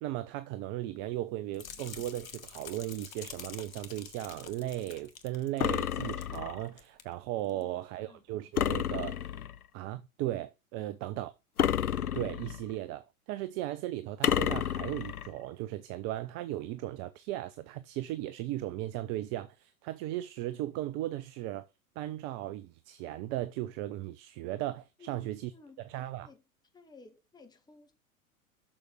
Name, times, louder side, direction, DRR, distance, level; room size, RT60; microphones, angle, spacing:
voice 1, 0.0-9.3 9.7-11.3 12.1-21.7 22.0-25.5 25.9-26.3, right 14 dB, 30° right, 0.5 m, -37 dB
sound 1, 1.5-6.4 6.7-7.0 7.5-7.6, left 7 dB, 65° left, 1.4 m, -47 dB
sound 2, 5.6-6.7 8.6-9.6 11.6-12.7 14.2-15.3, left 9 dB, 85° left, 0.6 m, -30 dB
voice 2, 7.9-8.5 10.8-11.0 25.0-26.4 26.7-27.9, left 3 dB, 10° left, 1.7 m, -56 dB
6.9 x 6.6 x 6.2 m
figure-of-eight pair, 90°, 43 cm